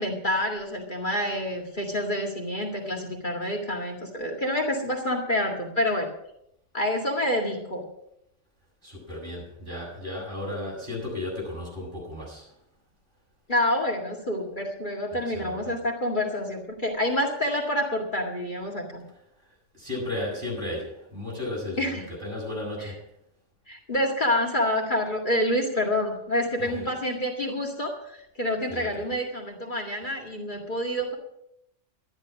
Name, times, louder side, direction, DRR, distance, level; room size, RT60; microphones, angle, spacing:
voice 1, 0.0-6.1 6.7-7.8 13.5-19.0 21.8-22.0 23.7-31.1, left 1 dB, 40° left, 1 dB, 2.2 m, -27 dB
voice 2, 8.8-12.5 15.1-15.7 19.4-23.0 26.6-26.9 28.7-29.0, left 1 dB, 45° right, -4 dB, 7.7 m, -35 dB
13.0 x 11.0 x 6.2 m, 0.77 s
omnidirectional pair, 1.2 m